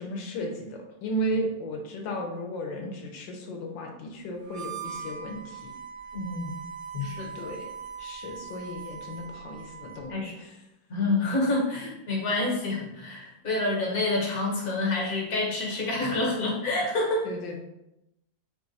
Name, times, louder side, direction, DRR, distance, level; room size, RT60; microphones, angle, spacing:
voice 1, 0.0-5.7 7.3-7.7 8.0-10.6 17.2-17.6, equal, 80° left, 2 dB, 1.4 m, -34 dB
Harmonica, 4.4-10.1, right 6 dB, 85° right, 0.5 m, -41 dB
voice 2, 6.1-6.5 6.9-7.5 10.1-10.3 10.9-17.3, left 2 dB, 50° left, -2 dB, 1.3 m, -28 dB
4.5 x 2.4 x 3.9 m, 0.87 s
omnidirectional pair, 2.0 m